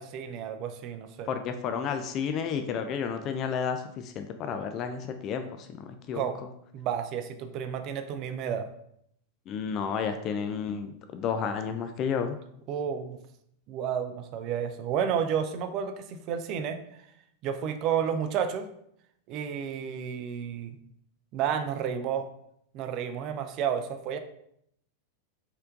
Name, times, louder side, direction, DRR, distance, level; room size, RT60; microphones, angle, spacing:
voice 1, 0.0-1.3 6.1-6.4 6.7-8.7 12.7-13.2 13.7-16.8 17.4-18.7 19.3-20.8 21.3-22.3 22.7-24.2, right 8 dB, 40° right, 9 dB, 0.4 m, -31 dB
voice 2, 1.3-6.3 9.5-12.4, left 6 dB, 35° left, 7 dB, 0.3 m, -31 dB
4.3 x 3.8 x 2.5 m, 0.72 s
figure-of-eight pair, 90°, 0 cm